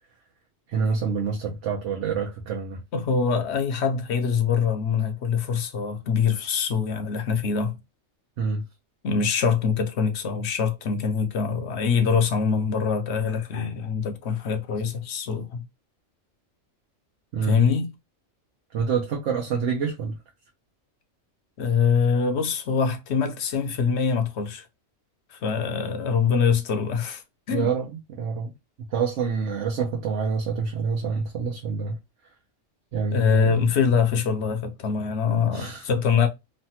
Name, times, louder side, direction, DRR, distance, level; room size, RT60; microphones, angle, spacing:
voice 1, 0.7-2.8 8.4-8.6 17.3-17.6 18.7-20.1 27.5-28.5 28.9-32.0 32.9-33.7 35.5-35.8, right 5 dB, 70° right, 1.0 m, -27 dB
voice 2, 2.9-7.8 9.0-15.6 17.4-17.9 21.6-24.6 25.3-27.2 27.5-27.7 33.1-36.3, left 6 dB, 65° left, 0.9 m, -24 dB
3.2 x 2.2 x 2.7 m
omnidirectional pair, 1.3 m